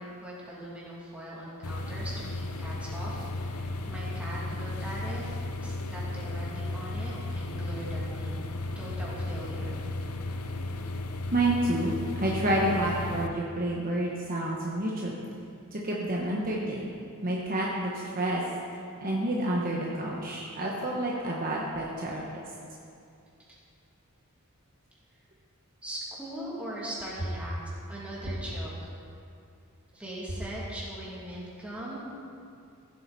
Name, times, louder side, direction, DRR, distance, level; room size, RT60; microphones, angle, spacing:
voice 1, 0.0-5.2 5.6-8.4 8.8-9.8 25.8-27.5 27.9-28.7 29.9-32.0, right 1 dB, 5° right, -7 dB, 2.5 m, -40 dB
sound 1, 1.6-13.3, left 2 dB, 90° left, 0.7 m, -35 dB
voice 2, 11.3-15.1 15.7-16.9 17.2-18.4 19.0-22.2, right 1 dB, 40° right, -3 dB, 1.1 m, -29 dB
15.5 x 7.9 x 4.1 m, 2.5 s
head